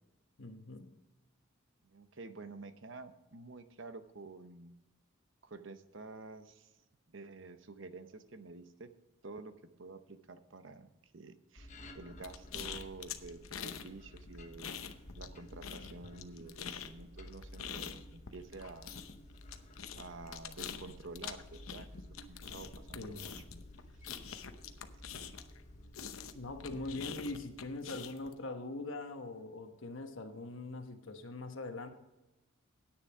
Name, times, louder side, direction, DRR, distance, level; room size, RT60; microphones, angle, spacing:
voice 1, 0.4-0.9 22.9-23.3 26.3-31.9, left 2 dB, 70° left, 6 dB, 1.2 m, -42 dB
voice 2, 1.8-4.7 5.4-6.7 7.1-8.9 9.2-9.5 9.8-14.7 15.2-19.0 20.0-21.9 22.3-23.4, right 3 dB, 60° right, 10 dB, 0.8 m, -49 dB
sound 1, 11.6-27.9, left 1 dB, 35° left, 1.1 m, -53 dB
sound 2, 12.2-13.9 14.2-15.3 15.6-25.6 25.9-28.3, left 8 dB, 85° left, 0.8 m, -45 dB
10.0 x 9.0 x 5.0 m, 0.97 s
head